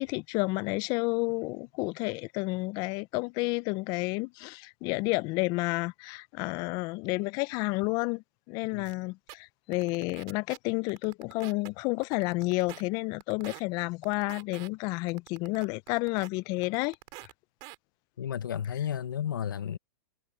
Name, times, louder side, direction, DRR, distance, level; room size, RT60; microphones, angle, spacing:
voice 1, 0.0-17.0, left 25 dB, 35° left, 0.5 m, -31 dB
sound 1, 8.8-8.9 9.3-9.4 9.7-10.6 10.9-11.7 12.0-12.8 13.2-13.6 14.0-14.7 15.1-16.3 16.6-17.3 17.6-17.8, right 28 dB, 45° right, 3.9 m, -45 dB
voice 2, 18.2-19.8, left 9 dB, 90° left, 0.8 m, -32 dB
hypercardioid pair, 135°, 11 cm